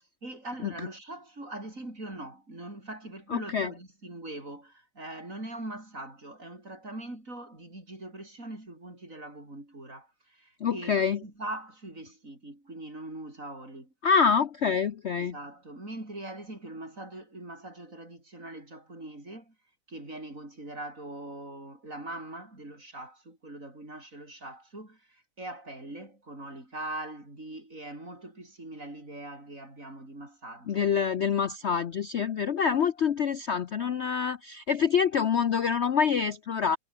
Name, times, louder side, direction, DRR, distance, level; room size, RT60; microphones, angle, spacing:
voice 1, 0.2-13.9 15.2-19.5 19.9-30.9, right 1 dB, 40° right, 7.7 m, -42 dB
voice 2, 3.3-3.7 10.6-11.2 14.0-15.3 30.7-36.8, left 6 dB, 70° left, 0.6 m, -26 dB
omnidirectional pair, 2.2 m